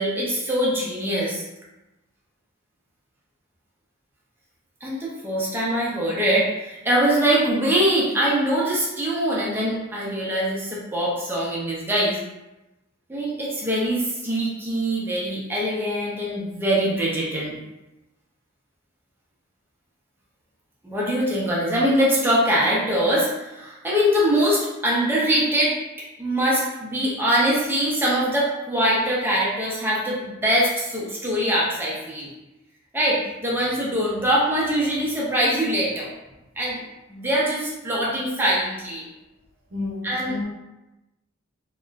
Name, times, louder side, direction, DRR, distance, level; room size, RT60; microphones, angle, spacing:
voice 1, 0.0-1.4 4.8-12.2 13.1-17.6 20.8-25.7 26.2-32.3 32.9-36.1 36.6-36.8 37.1-39.0 40.0-40.3, equal, 10° right, -6 dB, 0.5 m, -23 dB
voice 2, 39.7-40.4, left 3 dB, 80° right, -2 dB, 0.7 m, -31 dB
2.9 x 2.3 x 2.3 m, 1.0 s
head